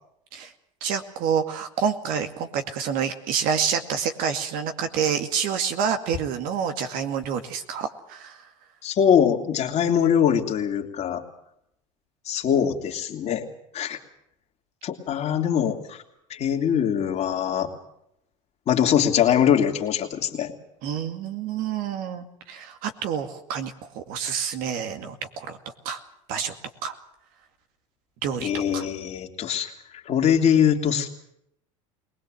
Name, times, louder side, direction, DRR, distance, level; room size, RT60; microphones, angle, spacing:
voice 1, 0.8-8.4 20.8-25.6 25.8-26.0 26.3-26.6 26.8-27.0 28.2-28.9, right 7 dB, 60° right, 7 dB, 2.3 m, -28 dB
voice 2, 8.8-11.2 12.3-13.5 13.7-14.0 14.8-16.0 16.3-17.7 18.7-20.5 28.4-31.1, left 8 dB, 45° left, 2 dB, 3.0 m, -22 dB
21.5 x 20.0 x 7.8 m, 0.76 s
hypercardioid pair, 90°, 16 cm